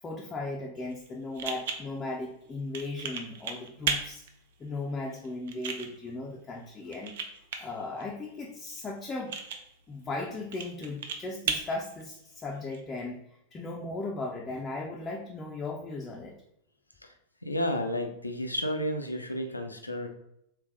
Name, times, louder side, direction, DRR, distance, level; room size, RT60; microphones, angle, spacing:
voice 1, 0.0-4.2 4.6-7.2 7.6-9.4 9.9-13.2 13.5-16.3, left 2 dB, 20° left, -1 dB, 0.4 m, -37 dB
sound 1, 0.8-12.8, right 5 dB, 55° right, 0.5 m, -38 dB
voice 2, 17.4-20.1, equal, 85° left, 5 dB, 0.4 m, -31 dB
3.3 x 3.2 x 3.2 m, 0.77 s
figure-of-eight pair, 90°, 0 cm